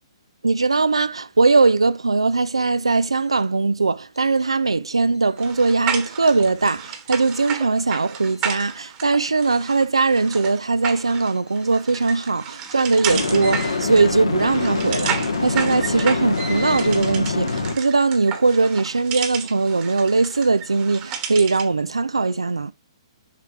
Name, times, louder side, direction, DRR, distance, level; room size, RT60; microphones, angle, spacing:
voice 1, 0.4-22.7, right 3 dB, 85° right, 0.3 m, -20 dB
sound 1, 5.4-21.8, right 7 dB, 30° right, 1.2 m, -32 dB
sound 2, 8.2-8.4 13.1-17.7, left 4 dB, 80° left, 1.4 m, -25 dB
6.6 x 4.7 x 3.2 m
figure-of-eight pair, 125°, 3 cm